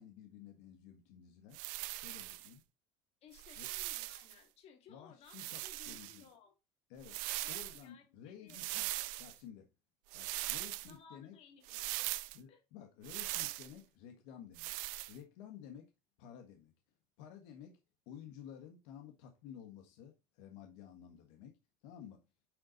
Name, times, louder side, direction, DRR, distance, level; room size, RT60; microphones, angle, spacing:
voice 1, 0.0-1.6 2.0-2.6 3.6-3.7 4.9-6.3 6.9-7.2 7.5-8.9 9.2-9.7 10.1-11.4 12.3-14.7 15.1-15.9 16.2-16.7 17.2-17.8 18.1-21.5 21.8-22.2, left 9 dB, 85° left, 1.4 m, -53 dB
sound 1, 1.5-2.5 3.3-4.3 5.3-6.2 7.0-7.8 8.5-9.4 10.1-10.9 11.7-12.4 13.0-13.7 14.6-15.2, right 20 dB, 75° right, 0.5 m, -40 dB
voice 2, 3.2-6.6 7.4-8.6 8.9-9.2 10.8-12.6, left 7 dB, 50° left, 2.5 m, -61 dB
9.4 x 4.0 x 3.9 m
cardioid pair, 140°, 14 cm